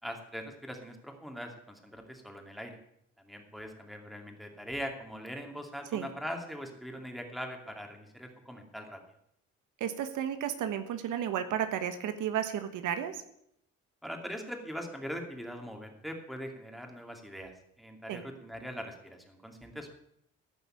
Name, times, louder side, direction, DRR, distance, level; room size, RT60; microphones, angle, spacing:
voice 1, 0.0-2.8 3.2-9.0 14.0-19.9, equal, ahead, 3 dB, 2.6 m, -41 dB
voice 2, 9.8-13.2 18.1-18.2, right 9 dB, 80° right, 9 dB, 1.2 m, -33 dB
15.0 x 5.5 x 8.9 m, 0.74 s
cardioid pair, 90°, 30 cm